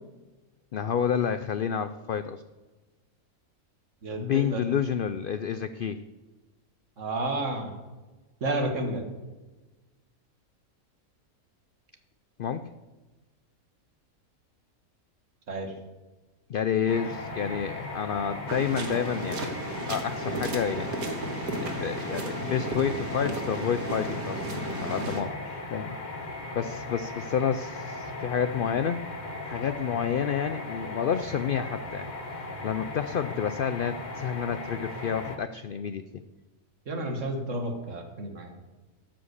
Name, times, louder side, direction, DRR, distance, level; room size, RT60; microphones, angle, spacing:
voice 1, 0.7-2.4 4.2-6.0 12.4-12.7 16.5-19.5 19.9-20.9 21.6-26.0 26.5-29.0 29.4-32.1 32.3-36.0, left 7 dB, 80° left, 11 dB, 0.4 m, -29 dB
voice 2, 4.0-4.6 7.0-7.7 8.4-9.1 15.5-15.7 36.9-38.5, right 2 dB, 60° right, 3 dB, 2.0 m, -31 dB
sound 1, 16.9-35.4, left 2 dB, 35° left, 1.1 m, -37 dB
sound 2, 18.5-25.2, right 2 dB, 90° right, 1.9 m, -34 dB
13.0 x 5.2 x 8.1 m, 1.2 s
omnidirectional pair, 1.5 m